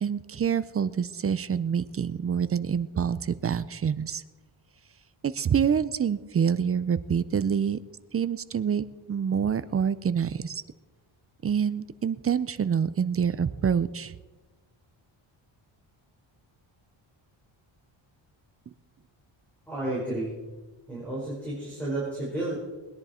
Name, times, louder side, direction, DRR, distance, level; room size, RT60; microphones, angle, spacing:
voice 1, 0.0-4.2 5.2-7.8 8.1-10.6 11.4-14.1, right 7 dB, 30° right, 15 dB, 0.5 m, -26 dB
voice 2, 19.7-20.4 20.9-22.6, right 2 dB, 5° left, -7 dB, 4.7 m, -31 dB
20.5 x 10.5 x 4.3 m, 1.2 s
wide cardioid pair, 140°, 48 cm